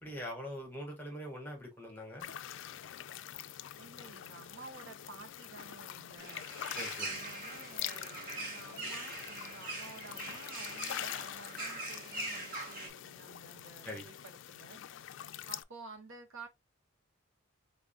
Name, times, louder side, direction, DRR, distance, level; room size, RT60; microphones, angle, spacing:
voice 1, 0.0-2.3 6.8-7.2 13.8-14.0, equal, 10° left, 1.6 m, -43 dB
sound 1, 2.2-15.6, left 11 dB, 60° left, 0.3 m, -45 dB
voice 2, 3.8-6.5 7.0-14.8 15.5-16.5, right 4 dB, 80° right, 1.0 m, -52 dB
sound 2, 6.2-12.9, right 2 dB, 45° right, 1.6 m, -42 dB
3.8 x 3.7 x 2.3 m
head